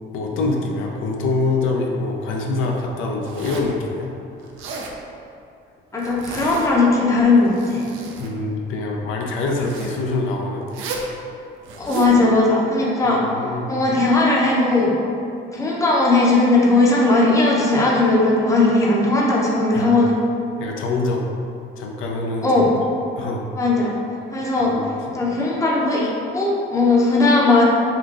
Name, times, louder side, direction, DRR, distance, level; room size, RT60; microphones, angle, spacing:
voice 1, 0.1-4.1 8.2-10.7 13.0-13.7 19.7-20.0 20.6-21.2 21.8-22.7 23.2-23.5 24.6-24.9, left 3 dB, 85° left, 0 dB, 0.4 m, -25 dB
Zipper (clothing), 3.2-3.8 4.4-5.0 6.0-6.9 7.3-8.3 9.4-10.0 10.7-11.1 11.6-12.2, right 3 dB, 85° right, 0.4 m, -33 dB
voice 2, 5.9-7.8 11.8-13.3 13.7-14.9 15.5-20.2 22.4-22.7 23.6-23.9 24.3-24.7 25.1-27.6, left 2 dB, 15° left, -4 dB, 0.5 m, -17 dB
3.7 x 2.4 x 2.4 m, 2.5 s
cardioid pair, 90°, 20 cm